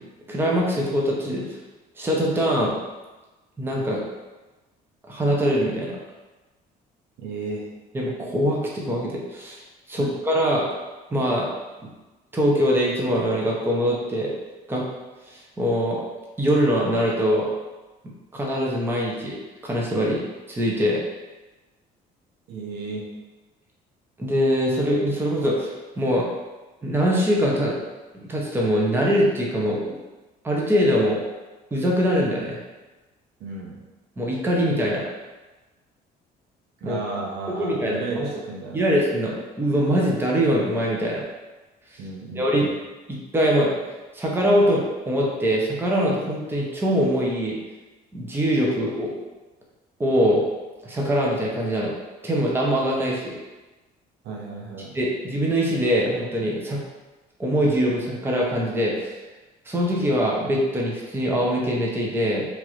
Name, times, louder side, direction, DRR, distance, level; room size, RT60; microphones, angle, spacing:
voice 1, 0.3-1.4 2.0-2.7 3.6-4.0 5.0-6.0 7.9-9.6 9.9-10.7 11.1-11.5 12.3-14.3 14.7-14.8 15.3-16.0 16.4-17.5 18.3-19.4 19.6-20.2 20.5-21.0 24.2-26.3 26.8-27.8 28.3-30.0 30.4-31.2 31.7-32.6 34.2-35.0 36.8-37.0 37.6-38.3 38.7-41.2 42.3-42.7 43.1-43.7 44.1-47.6 48.1-49.1 50.0-50.4 50.8-51.9 52.2-53.4 54.9-56.8 57.4-59.1 59.7-62.5, equal, 15° right, -3 dB, 0.6 m, -23 dB
voice 2, 7.2-7.7 10.0-10.2 22.5-23.2 33.4-33.8 36.8-38.8 42.0-42.7 54.2-55.0, right 3 dB, 75° right, -1 dB, 0.7 m, -33 dB
2.9 x 2.5 x 2.9 m, 1.2 s
cardioid pair, 110°, 17 cm